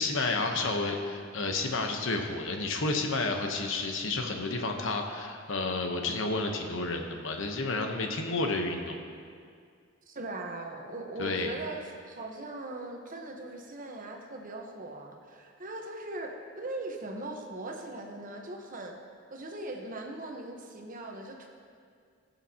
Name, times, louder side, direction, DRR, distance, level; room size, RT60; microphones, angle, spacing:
voice 1, 0.0-9.0 11.2-11.6, left 3 dB, 70° left, 4 dB, 1.0 m, -31 dB
voice 2, 10.1-11.8 12.1-19.0 19.3-21.5, right 2 dB, 45° right, 2 dB, 1.1 m, -40 dB
20.0 x 7.1 x 2.9 m, 2.2 s
head